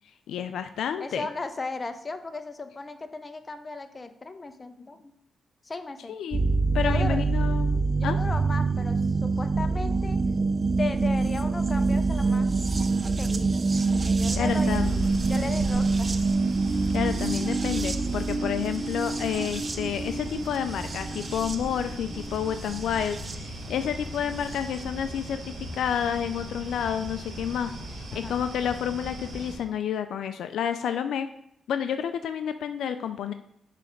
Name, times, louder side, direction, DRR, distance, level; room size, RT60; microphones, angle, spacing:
voice 1, 0.3-1.3 6.1-6.4 6.7-7.7 8.0-8.2 14.4-15.1 16.7-31.3 31.7-33.3, left 8 dB, 80° left, 10 dB, 0.3 m, -30 dB
voice 2, 1.0-5.1 5.6-6.2 6.8-7.2 8.0-10.2 10.8-12.5 13.2-14.9 15.3-16.1 28.1-28.4, left 3 dB, 30° left, 9 dB, 0.6 m, -36 dB
sound 1, 6.3-23.4 24.5-24.6, right 3 dB, 35° right, 0.5 m, -26 dB
sound 2, 14.3-29.6, right 1 dB, 75° right, 1.4 m, -38 dB
6.8 x 3.3 x 5.0 m, 0.74 s
cardioid pair, 70°, 0 cm